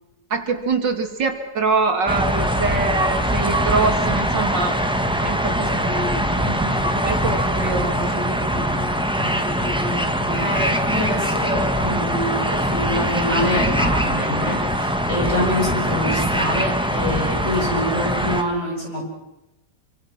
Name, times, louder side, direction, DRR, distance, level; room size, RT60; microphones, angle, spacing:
voice 1, 0.3-4.8 5.2-10.8, right 4 dB, 85° right, 5 dB, 3.2 m, -25 dB
winter ambience leaves wind crow birds, 2.1-18.4, equal, 5° right, 1.7 m, -22 dB
voice 2, 10.3-19.2, left 1 dB, 40° left, -2 dB, 8.0 m, -25 dB
29.0 x 25.0 x 6.0 m, 0.94 s
omnidirectional pair, 1.9 m